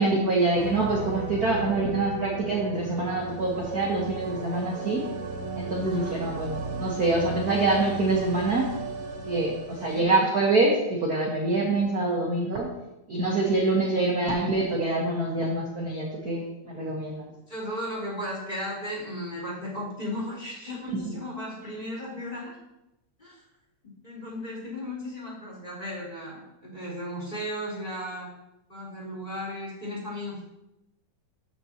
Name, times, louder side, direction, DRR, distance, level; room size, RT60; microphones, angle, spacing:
voice 1, 0.0-5.0 5.6-8.7 9.3-12.7 13.1-17.2, right 2 dB, 50° right, -2 dB, 1.1 m, -25 dB
sound 1, 0.5-10.0, right 3 dB, 30° right, 2.2 m, -35 dB
voice 2, 17.5-22.5 23.2-23.4 24.0-28.3 28.7-30.4, left 1 dB, 15° left, -4 dB, 3.6 m, -35 dB
13.5 x 7.0 x 3.0 m, 0.89 s
omnidirectional pair, 3.6 m